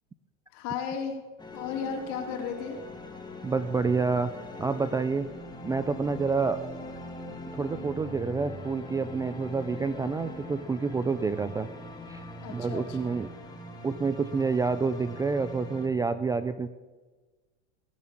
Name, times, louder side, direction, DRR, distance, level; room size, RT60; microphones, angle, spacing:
voice 1, 0.5-1.2 1.5-2.8 12.4-13.2, left 6 dB, 55° left, 4 dB, 3.5 m, -34 dB
sound 1, 1.4-15.9, left 1 dB, 10° left, 2.8 m, -42 dB
voice 2, 3.4-4.3 4.6-5.3 5.6-6.6 7.5-11.7 12.1-12.2 12.5-13.3 13.8-16.7, right 4 dB, 10° right, 12 dB, 0.4 m, -28 dB
20.0 x 7.1 x 8.9 m, 1.3 s
supercardioid pair, 125°, 37 cm